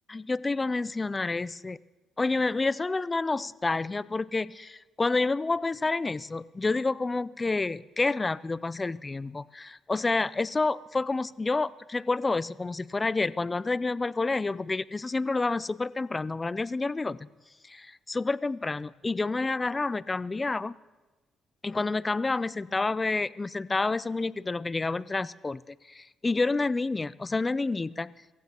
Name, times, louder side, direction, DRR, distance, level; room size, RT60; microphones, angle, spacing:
voice 1, 0.1-1.8 2.2-17.3 17.6-20.8 21.6-28.1, left 3 dB, 25° left, 18 dB, 0.4 m, -29 dB
24.5 x 14.5 x 2.9 m, 1.2 s
cardioid pair, 90°, 0 cm